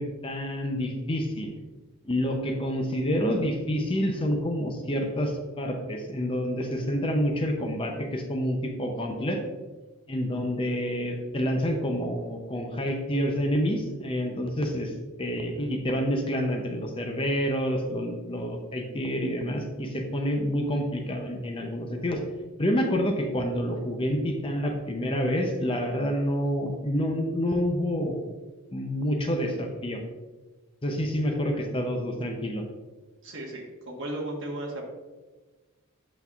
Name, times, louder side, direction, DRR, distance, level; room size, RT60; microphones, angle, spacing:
voice 1, 0.0-1.5 2.1-9.4 10.1-14.9 15.2-22.2 22.6-28.2 28.7-30.0 30.8-32.6, equal, 25° left, 4 dB, 0.5 m, -28 dB
voice 2, 33.2-34.8, right 1 dB, 55° right, -1 dB, 1.3 m, -35 dB
8.1 x 5.3 x 2.4 m, 1.2 s
head